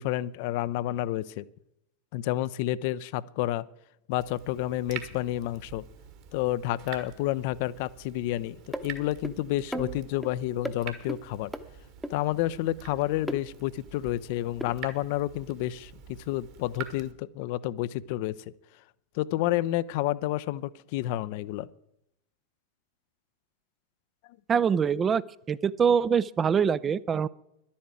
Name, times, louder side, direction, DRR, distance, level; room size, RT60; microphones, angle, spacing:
voice 1, 0.0-1.4 2.1-3.7 4.1-5.8 6.3-8.6 8.8-11.5 12.1-18.4 19.1-21.7, left 14 dB, 45° left, 17 dB, 0.4 m, -30 dB
Water tap faucet / Drip, 4.2-17.1, right 8 dB, 45° right, 1.6 m, -46 dB
sound 1, 8.7-8.9 9.2-9.4 9.7-10.3 10.7-10.8 11.1-11.2 11.5-11.6 12.0-12.1 13.3-13.4 14.6-14.7, equal, ahead, 0.9 m, -33 dB
voice 2, 24.5-25.2 25.5-27.3, right 7 dB, 20° right, 18 dB, 0.4 m, -24 dB
11.0 x 8.5 x 9.2 m, 0.82 s
figure-of-eight pair, 90°, 0 cm